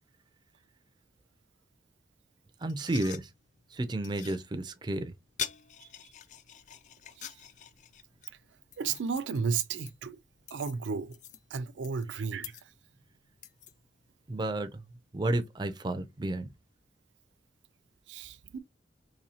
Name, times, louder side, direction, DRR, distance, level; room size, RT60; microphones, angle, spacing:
voice 1, 2.6-3.3 3.7-5.1 5.8-6.1 14.3-14.9 15.1-16.5, right 1 dB, 25° right, 0.4 m, -32 dB
sound 1, 2.7-14.1, left 8 dB, 40° left, 0.4 m, -46 dB
voice 2, 8.8-10.2 10.5-11.1 11.5-12.5 18.1-18.6, right 5 dB, 85° right, 0.4 m, -33 dB
4.1 x 2.7 x 2.7 m
head